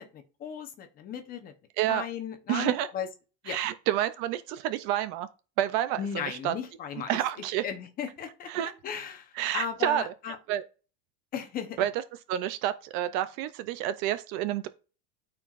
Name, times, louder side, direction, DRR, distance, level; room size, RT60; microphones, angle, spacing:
voice 1, 0.0-1.5 1.9-3.1 3.4-3.6 6.0-7.2 7.6-8.5 8.8-10.4 11.3-11.9, left 8 dB, 25° left, 0.8 m, -36 dB
voice 2, 2.5-2.9 3.5-5.3 5.6-6.5 7.1-7.6 8.5-8.7 9.4-10.0 10.5-10.6 11.8-11.9 12.3-14.7, right 12 dB, 45° right, 0.4 m, -29 dB
13.0 x 4.5 x 2.4 m
cardioid pair, 180°, 36 cm